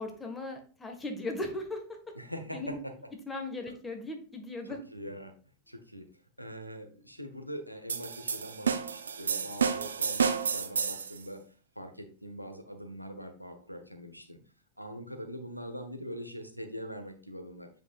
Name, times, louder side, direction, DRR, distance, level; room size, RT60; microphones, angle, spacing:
voice 1, 0.0-1.8 2.5-2.8 3.3-4.8, left 2 dB, 15° left, 4 dB, 1.5 m, -37 dB
voice 2, 2.1-2.9 4.6-5.3 5.7-6.0 6.4-11.4 11.8-14.4 14.8-17.7, equal, 90° left, 6 dB, 1.0 m, -43 dB
sound 1, 7.9-11.2, right 6 dB, 70° right, 0.6 m, -30 dB
7.9 x 5.1 x 2.4 m, 0.40 s
figure-of-eight pair, 90°, 0 cm